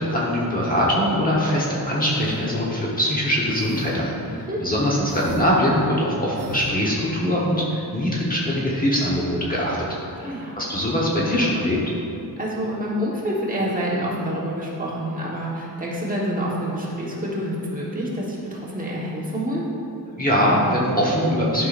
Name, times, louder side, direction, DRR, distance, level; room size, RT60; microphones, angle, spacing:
voice 1, 0.0-9.8 10.5-11.8 20.2-21.7, equal, 20° left, -5 dB, 1.1 m, -22 dB
sound 1, 2.1-2.5 3.5-4.1 5.0-5.4 6.3-6.7, right 1 dB, 80° right, 1.2 m, -36 dB
voice 2, 10.2-10.5 12.4-19.6, equal, 20° right, -6 dB, 1.4 m, -27 dB
11.5 x 5.7 x 2.6 m, 2.7 s
wide cardioid pair, 145°, 38 cm